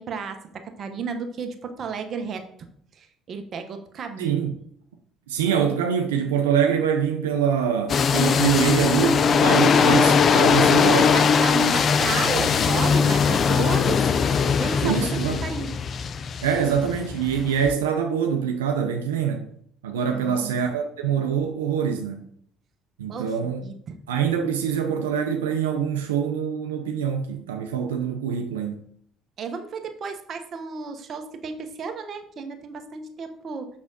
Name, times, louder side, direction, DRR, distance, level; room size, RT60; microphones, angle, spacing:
voice 1, 0.0-2.5 2.9-4.4 10.9-14.0 14.6-15.0 15.4-15.7 20.1-20.5 23.1-24.0 29.4-33.7, right 5 dB, 50° right, 0.9 m, -33 dB
voice 2, 4.2-4.5 5.3-11.1 14.8-15.4 16.4-19.4 19.8-22.3 23.0-23.6 24.1-28.8, right 7 dB, 85° right, 0.5 m, -24 dB
sound 1, 7.9-17.7, left 6 dB, 45° left, 0.4 m, -20 dB
6.2 x 6.0 x 2.7 m
hypercardioid pair, 60°, 0 cm